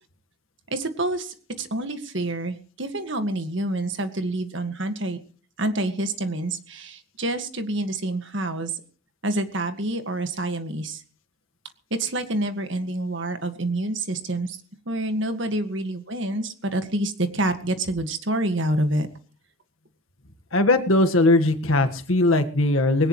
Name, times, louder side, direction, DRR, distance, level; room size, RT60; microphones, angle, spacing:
voice 1, 0.7-5.2 5.6-8.8 9.2-11.0 11.9-14.6 14.9-19.1, right 1 dB, 60° right, 8 dB, 1.9 m, -27 dB
voice 2, 20.5-23.1, left 2 dB, 75° left, 6 dB, 1.7 m, -19 dB
20.0 x 18.0 x 3.2 m, 0.41 s
head